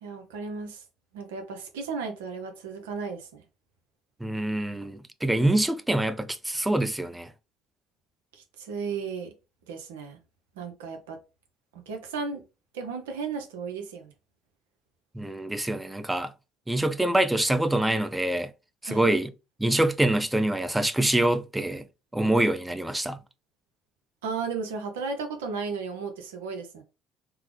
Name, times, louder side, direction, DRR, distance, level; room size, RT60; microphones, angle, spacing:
voice 1, 0.0-0.8 1.1-3.4 8.3-9.3 9.7-10.2 10.6-11.2 11.7-12.4 12.7-14.1 18.8-19.1 24.2-26.8, right 5 dB, 85° right, 0.6 m, -34 dB
voice 2, 4.2-7.3 15.1-16.3 16.7-18.5 18.8-19.3 19.6-21.9 22.1-23.2, right 1 dB, 10° right, 0.4 m, -25 dB
3.4 x 2.0 x 3.2 m
hypercardioid pair, 70°, 0 cm